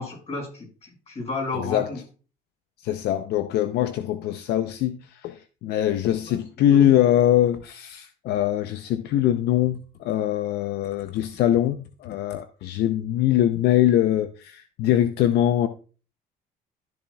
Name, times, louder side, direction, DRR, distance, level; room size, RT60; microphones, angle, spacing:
voice 1, 0.0-2.0 6.3-6.4 6.7-7.0, left 2 dB, 40° left, 5.5 m, -32 dB
voice 2, 1.5-1.9 2.8-15.7, left 12 dB, 75° left, 0.6 m, -22 dB
13.0 x 7.1 x 2.3 m
cardioid pair, 110°, 17 cm